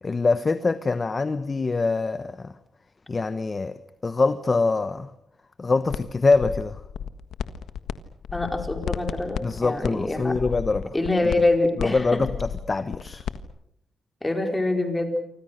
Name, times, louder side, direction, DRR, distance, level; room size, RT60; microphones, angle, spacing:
voice 1, 0.0-2.5 3.1-3.8 4.0-5.1 5.6-6.8 9.4-10.9 11.8-13.2, left 3 dB, 30° left, 12 dB, 1.0 m, -24 dB
sound 1, 5.9-6.0 6.3-7.9 8.2-13.4, left 8 dB, 85° left, 1.5 m, -32 dB
voice 2, 8.3-10.3 10.9-12.0 14.2-15.1, left 2 dB, 15° left, 5 dB, 4.6 m, -25 dB
29.0 x 25.5 x 6.6 m, 0.72 s
cardioid pair, 130°, 0 cm